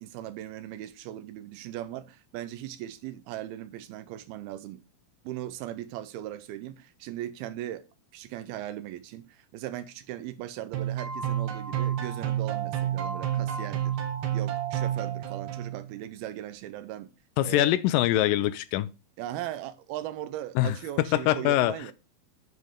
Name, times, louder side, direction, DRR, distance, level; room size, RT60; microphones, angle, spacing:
voice 1, 0.0-4.8 5.2-7.8 8.1-14.0 14.3-17.1 17.4-17.7 19.2-21.9, right 13 dB, 85° right, 2.6 m, -38 dB
sound 1, 10.7-15.9, right 10 dB, 65° right, 2.2 m, -30 dB
voice 2, 17.4-18.9 20.6-20.8 21.1-21.7, left 14 dB, 80° left, 2.1 m, -23 dB
9.6 x 5.2 x 3.6 m
omnidirectional pair, 4.3 m